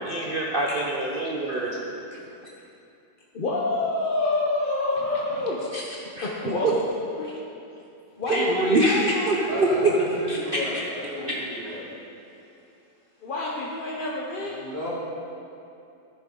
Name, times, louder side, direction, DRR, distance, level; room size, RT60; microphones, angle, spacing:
voice 1, 0.0-1.8 5.7-5.8 6.2-6.3 8.3-9.9 10.3-10.8 11.3-11.4 11.7-11.8, right 2 dB, 75° right, -2 dB, 0.5 m, -25 dB
voice 2, 1.4-1.9 9.5-11.9 14.4-14.9, left 1 dB, 10° left, -10 dB, 2.2 m, -33 dB
voice 3, 3.3-5.6 6.2-6.8 7.2-7.3 8.2-10.0 13.2-14.5, left 2 dB, 50° left, -3 dB, 0.6 m, -28 dB
12.0 x 6.9 x 3.8 m, 2.6 s
omnidirectional pair, 1.9 m